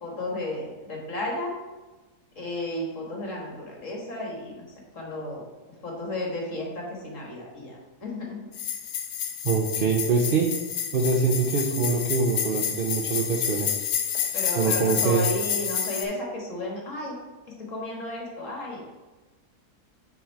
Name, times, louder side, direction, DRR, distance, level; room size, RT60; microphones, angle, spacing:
voice 1, 0.0-1.6 2.4-4.6 4.9-5.4 5.8-8.5 14.3-17.2 17.5-18.8, left 1 dB, 50° left, -1 dB, 1.9 m, -33 dB
sound 1, 8.5-16.0, left 8 dB, 75° left, 1.2 m, -29 dB
voice 2, 9.4-10.5 10.9-13.8 14.6-15.3, right 4 dB, 60° right, 2 dB, 0.5 m, -24 dB
8.6 x 3.5 x 4.5 m, 1.2 s
omnidirectional pair, 1.7 m